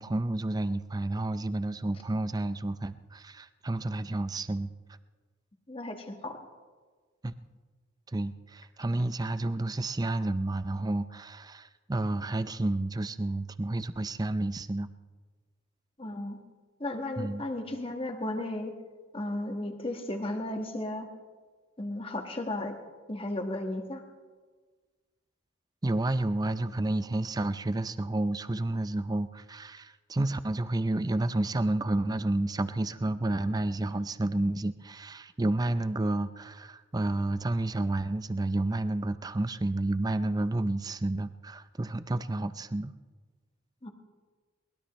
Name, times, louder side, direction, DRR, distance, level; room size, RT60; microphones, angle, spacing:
voice 1, 0.0-4.7 7.2-7.3 8.1-14.9 17.2-17.4 25.8-42.9, right 2 dB, 20° right, 13 dB, 0.5 m, -30 dB
voice 2, 5.7-6.4 16.0-16.4 16.8-18.7 19.1-21.1 21.8-22.8 23.1-24.0 43.8-43.9, left 1 dB, 30° left, 4 dB, 1.6 m, -34 dB
22.5 x 20.0 x 3.2 m, 1.4 s
head